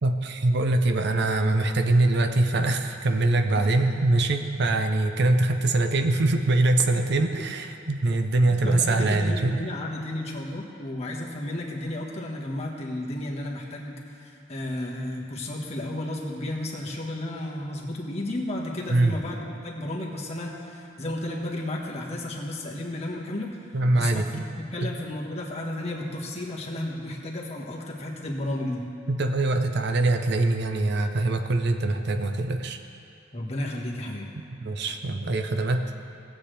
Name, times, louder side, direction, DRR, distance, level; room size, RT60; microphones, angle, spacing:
voice 1, 0.0-9.6 18.9-19.1 23.7-24.5 24.8-24.9 29.1-32.8 34.6-35.9, right 2 dB, 60° right, 6 dB, 0.6 m, -23 dB
voice 2, 8.5-19.4 19.6-23.6 23.9-24.2 24.6-28.9 33.3-34.3, left 1 dB, 35° left, -2 dB, 1.4 m, -33 dB
17.5 x 7.7 x 3.3 m, 2.7 s
head